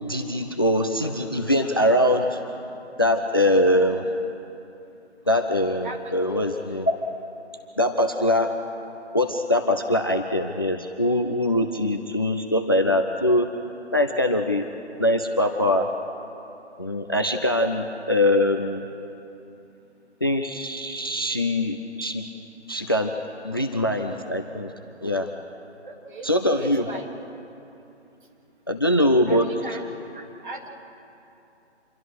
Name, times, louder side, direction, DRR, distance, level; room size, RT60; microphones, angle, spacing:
voice 1, 0.0-2.4 3.0-4.2 5.3-7.1 7.8-8.6 9.1-13.5 13.9-14.7 15.0-15.9 16.8-18.8 20.2-22.3 22.7-23.2 23.4-24.7 25.0-25.3 26.2-27.0 28.7-29.5, left 1 dB, 20° left, 5 dB, 0.6 m, -22 dB
voice 2, 5.8-6.8 25.8-27.1 29.2-29.8 30.1-30.7, right 2 dB, 45° right, 1 dB, 3.3 m, -39 dB
27.0 x 22.5 x 6.4 m, 2.8 s
figure-of-eight pair, 155°, 35 cm